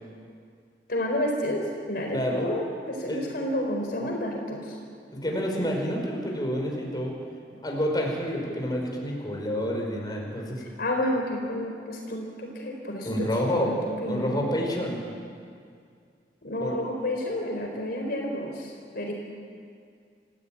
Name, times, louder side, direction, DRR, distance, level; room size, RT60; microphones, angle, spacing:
voice 1, 0.9-1.6 1.9-4.8 10.6-13.3 13.5-14.5 16.4-19.1, left 1 dB, 60° left, 1 dB, 4.2 m, -30 dB
voice 2, 2.1-2.5 3.1-3.2 5.2-7.1 7.6-10.6 13.0-13.7 14.1-15.0 16.6-16.7, equal, 25° left, -1 dB, 5.3 m, -28 dB
28.0 x 16.0 x 9.0 m, 2.2 s
head